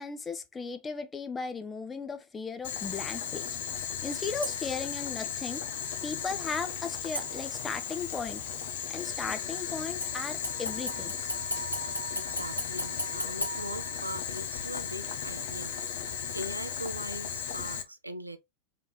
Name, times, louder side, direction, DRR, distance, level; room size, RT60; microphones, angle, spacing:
voice 1, 0.0-3.5 4.0-5.7 6.0-8.4 8.9-11.1, left 5 dB, 15° left, 0.6 m, -36 dB
Boiling, 2.6-17.8, left 8 dB, 55° left, 0.8 m, -36 dB
sound 1, 4.4-4.9 7.1-7.9 10.0-14.4 14.8-14.9, equal, 85° left, 1.1 m, -38 dB
voice 2, 12.1-15.7 16.0-18.4, equal, 85° right, 0.5 m, -40 dB
3.5 x 3.0 x 3.7 m
figure-of-eight pair, 90°, 0 cm